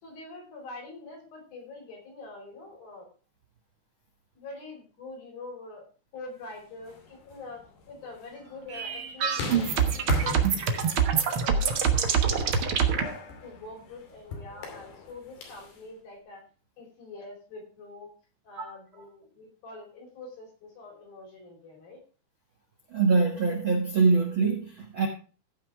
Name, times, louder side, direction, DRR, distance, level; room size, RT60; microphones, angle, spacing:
voice 1, 0.0-3.1 4.4-13.0 13.4-16.4 16.8-18.1 18.4-22.0, left 3 dB, 70° left, 0 dB, 6.3 m, -45 dB
sound 1, 6.7-15.8, left 3 dB, 85° left, 4.6 m, -40 dB
sound 2, 8.7-13.0, right 7 dB, 80° right, 1.1 m, -25 dB
voice 2, 22.9-25.1, right 4 dB, 55° right, 2 dB, 1.4 m, -24 dB
15.5 x 6.0 x 4.6 m, 0.37 s
omnidirectional pair, 4.4 m